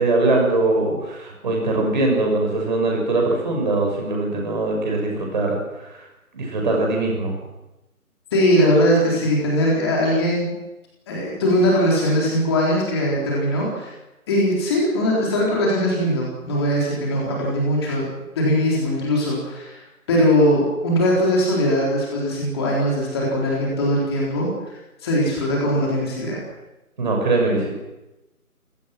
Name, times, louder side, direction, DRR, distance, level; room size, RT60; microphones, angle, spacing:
voice 1, 0.0-6.1 6.3-7.3 27.0-27.7, right 2 dB, 30° right, 1 dB, 6.0 m, -21 dB
voice 2, 8.3-10.5 11.1-13.9 14.3-18.1 18.4-19.8 20.1-26.4, equal, 15° left, -3 dB, 4.3 m, -20 dB
28.5 x 17.5 x 6.2 m, 1.0 s
figure-of-eight pair, 160°, 44 cm